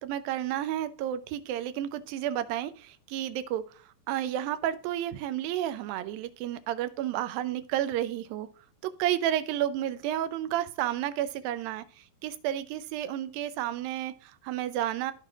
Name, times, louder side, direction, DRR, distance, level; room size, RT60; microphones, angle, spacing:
voice 1, 0.0-8.5 8.8-15.1, right 12 dB, 85° right, 11 dB, 2.5 m, -31 dB
14.5 x 4.9 x 2.4 m, 0.42 s
omnidirectional pair, 4.0 m